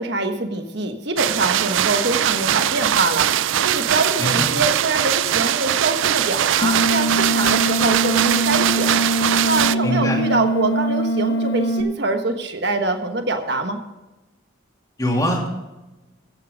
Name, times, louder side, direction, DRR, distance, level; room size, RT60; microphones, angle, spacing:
voice 1, 0.0-3.3 3.6-9.0 9.4-13.8, right 3 dB, 55° right, 6 dB, 1.3 m, -24 dB
sound 1, 1.2-9.8, right 11 dB, 70° right, 0.4 m, -21 dB
sound 2, 6.6-11.8, right 1 dB, 55° left, 1.4 m, -22 dB
voice 2, 9.8-10.2 15.0-15.5, left 1 dB, 20° left, -1 dB, 2.7 m, -22 dB
14.5 x 8.7 x 5.1 m, 1.1 s
head